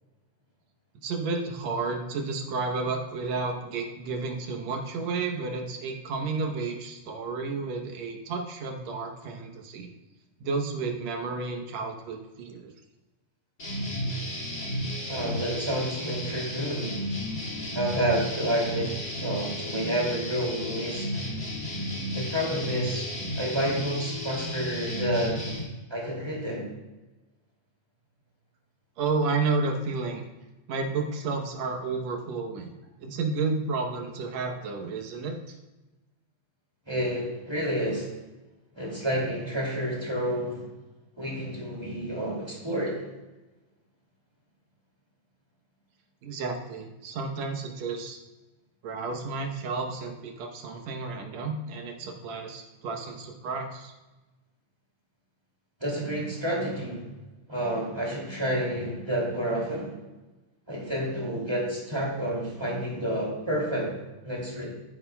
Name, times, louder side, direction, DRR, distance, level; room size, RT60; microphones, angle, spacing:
voice 1, 1.0-9.9 10.4-12.7 29.0-30.2 30.7-32.7 33.0-35.4 46.2-48.2 48.8-53.9, right 4 dB, 65° right, 3 dB, 2.0 m, -31 dB
sound 1, 13.6-25.6, equal, 25° left, 2.0 m, -33 dB
voice 2, 15.1-17.1 17.7-21.2 22.1-23.1 23.4-25.5 25.9-26.7 36.9-38.1 38.7-40.6 41.2-43.0 55.8-57.1 57.5-59.9 60.7-63.9 64.2-64.7, equal, 10° right, -4 dB, 1.9 m, -29 dB
15.0 x 9.3 x 2.3 m, 1.1 s
omnidirectional pair, 3.8 m